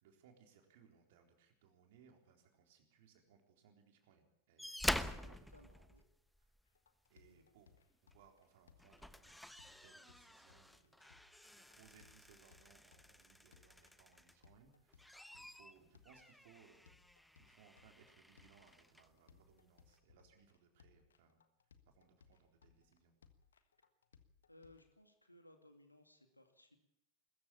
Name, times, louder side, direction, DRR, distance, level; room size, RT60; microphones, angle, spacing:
voice 1, 0.0-5.9 7.1-7.7 8.0-9.4 9.6-11.0 11.5-15.1 15.4-16.9 17.4-21.4 21.9-23.1, right 7 dB, 50° right, 4 dB, 3.9 m, -67 dB
sound 1, 4.6-6.6 8.1-8.3 8.7-14.5 14.9-19.1 20.0-20.1, left 1 dB, ahead, 1.0 m, -47 dB
voice 2, 5.1-6.0 7.3-7.4 24.5-26.8, left 1 dB, 85° left, 6 dB, 2.3 m, -63 dB
sound 2, 6.7-24.9, left 6 dB, 70° left, 1.5 m, -69 dB
21.5 x 14.5 x 8.6 m, 0.86 s
figure-of-eight pair, 90°, 0 cm